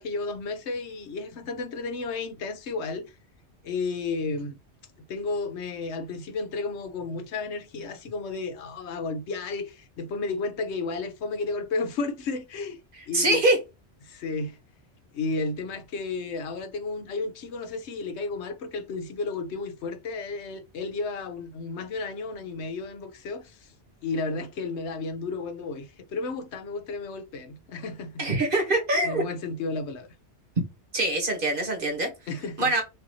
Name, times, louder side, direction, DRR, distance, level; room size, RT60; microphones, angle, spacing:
voice 1, 0.0-3.1 3.6-4.6 5.1-12.8 13.1-13.4 14.0-14.6 15.1-23.7 24.0-28.2 29.0-30.1 32.3-32.7, left 3 dB, 75° left, 1.0 m, -32 dB
voice 2, 13.1-13.6 28.2-29.2 30.6-30.7 30.9-32.1 32.6-32.8, right 2 dB, 50° right, 1.5 m, -23 dB
5.4 x 2.7 x 2.8 m
omnidirectional pair, 1.2 m